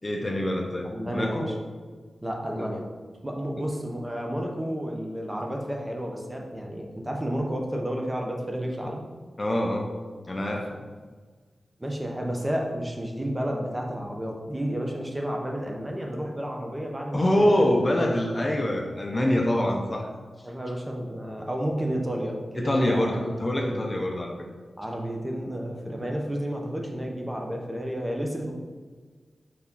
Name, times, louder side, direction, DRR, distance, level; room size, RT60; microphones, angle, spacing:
voice 1, 0.0-1.5 2.6-2.7 3.6-3.7 9.4-9.9 10.3-10.7 17.1-20.1 22.6-24.3, left 1 dB, 30° left, 1 dB, 0.7 m, -25 dB
voice 2, 0.8-1.5 2.2-2.8 3.2-9.0 11.8-17.6 19.6-19.7 20.4-23.2 23.6-23.8 24.8-28.5, equal, 15° right, 0 dB, 1.1 m, -31 dB
4.8 x 4.0 x 5.6 m, 1.5 s
wide cardioid pair, 80°, 0 cm